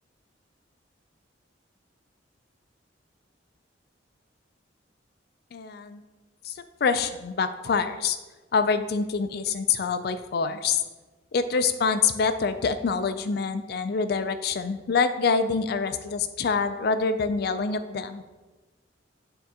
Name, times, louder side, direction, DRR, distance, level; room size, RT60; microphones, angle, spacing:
voice 1, 5.5-6.0 6.4-8.2 8.5-10.8 11.3-18.2, left 5 dB, 55° left, 10 dB, 0.4 m, -26 dB
9.1 x 3.7 x 2.9 m, 1.2 s
head